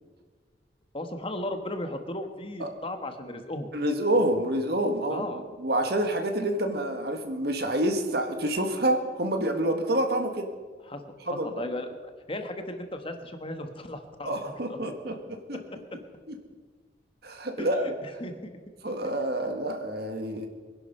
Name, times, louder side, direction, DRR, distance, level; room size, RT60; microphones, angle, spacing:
voice 1, 0.9-3.7 5.1-5.4 10.9-14.4 14.7-14.8 17.6-18.5, left 1 dB, 30° left, 7 dB, 1.2 m, -36 dB
voice 2, 3.7-5.3 5.6-10.5 11.3-11.5 14.3-15.6 17.2-17.9 18.8-20.5, right 1 dB, 60° right, 5 dB, 1.8 m, -27 dB
22.5 x 11.0 x 5.5 m, 1.5 s
head